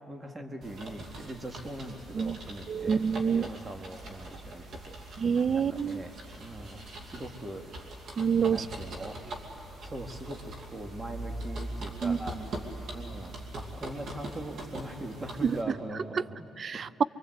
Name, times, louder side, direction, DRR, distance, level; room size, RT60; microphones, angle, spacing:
voice 1, 0.1-4.9 5.5-7.7 8.5-9.2 9.8-12.4 12.9-16.5, right 1 dB, 25° right, 3 dB, 2.4 m, -41 dB
sound 1, 0.6-15.6, right 1 dB, 65° right, 2.7 m, -42 dB
voice 2, 2.7-3.5 5.2-6.0 8.2-8.7 12.0-12.2 15.4-15.6 16.6-17.0, right 6 dB, 45° right, 19 dB, 0.5 m, -27 dB
24.5 x 23.0 x 8.2 m, 2.9 s
cardioid pair, 90°, 0 cm